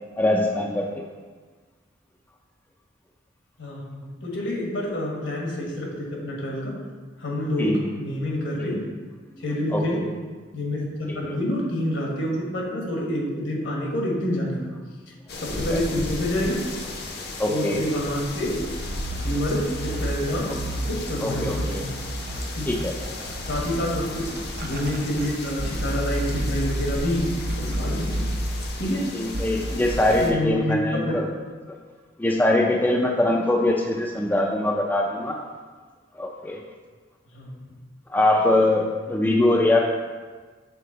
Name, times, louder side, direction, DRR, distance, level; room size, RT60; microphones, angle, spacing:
voice 1, 0.2-1.0 7.6-7.8 8.7-8.8 9.7-9.8 15.7-15.8 17.4-17.8 21.2-21.8 22.7-22.9 27.7-27.8 29.1-31.2 31.7-31.8 32.2-35.4 36.2-36.6 38.1-39.9, left 1 dB, 10° left, 0 dB, 0.3 m, -22 dB
voice 2, 3.6-6.8 7.2-8.8 9.4-10.0 10.5-14.7 15.1-16.6 17.5-18.7 19.2-21.9 22.5-22.7 23.5-24.3 24.6-28.3 28.7-29.1 30.2-31.2 37.3-37.6, left 1 dB, 75° left, -2 dB, 1.3 m, -27 dB
sound 1, 15.3-30.3, left 2 dB, 55° left, 0.7 m, -35 dB
sound 2, 18.8-28.9 29.3-30.3, right 1 dB, 50° right, 0.5 m, -31 dB
6.7 x 3.8 x 3.8 m, 1.4 s
head